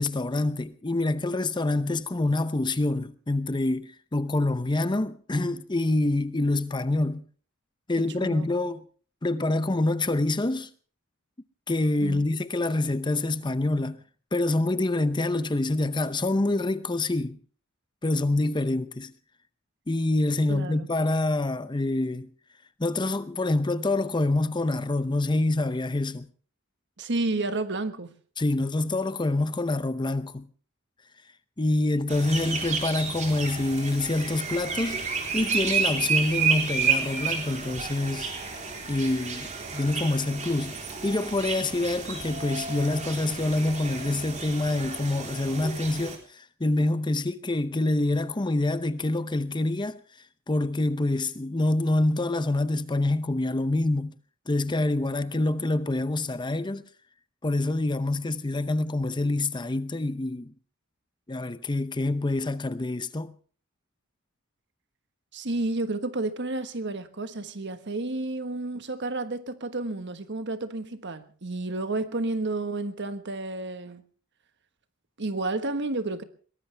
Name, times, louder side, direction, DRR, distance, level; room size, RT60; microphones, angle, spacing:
voice 1, 0.0-7.2 7.9-8.8 9.2-10.7 11.7-14.0 14.3-17.4 18.0-19.1 19.9-22.3 22.8-26.3 28.4-30.5 31.6-35.0 35.3-38.3 38.9-50.0 50.5-54.1 54.5-56.9 57.4-60.5 61.3-63.3, left 2 dB, 20° left, 0.7 m, -26 dB
voice 2, 8.2-8.5 12.0-12.2 20.5-20.9 27.0-28.1 65.3-74.0 75.2-76.2, right 2 dB, 55° right, 1.5 m, -31 dB
sound 1, 32.1-46.2, right 5 dB, 35° right, 3.9 m, -31 dB
22.5 x 19.0 x 3.4 m
head